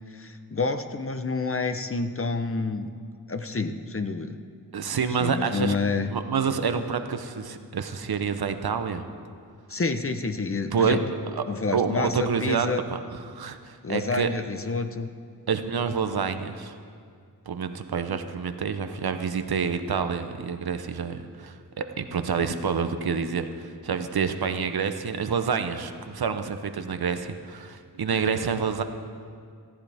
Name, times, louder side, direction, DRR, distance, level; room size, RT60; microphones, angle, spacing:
voice 1, 0.1-2.9 3.3-4.4 5.2-6.1 9.7-11.0 11.5-12.8 13.8-15.1, left 4 dB, 35° left, 8 dB, 0.8 m, -28 dB
voice 2, 4.7-5.8 6.0-9.0 10.7-11.0 11.3-11.4 11.7-14.3 15.5-16.8 17.5-28.8, right 6 dB, 65° right, 8 dB, 0.9 m, -28 dB
16.5 x 14.0 x 3.5 m, 2.2 s
cardioid pair, 60°, 40 cm